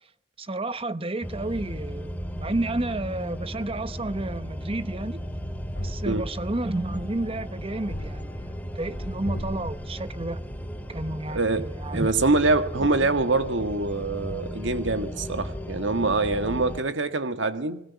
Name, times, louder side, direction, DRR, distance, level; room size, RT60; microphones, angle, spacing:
voice 1, 0.4-5.2 5.8-10.5 10.9-11.4 11.8-12.1 12.8-13.2, right 2 dB, 30° right, 0.9 m, -31 dB
sound 1, 1.2-16.8, equal, 10° left, 2.3 m, -35 dB
sound 2, 5.2-6.5 6.9-10.9 11.2-13.4 13.6-15.1, left 1 dB, 65° left, 2.8 m, -41 dB
voice 2, 11.3-11.6 11.9-17.8, right 3 dB, 70° right, 1.8 m, -24 dB
29.5 x 20.5 x 7.2 m
head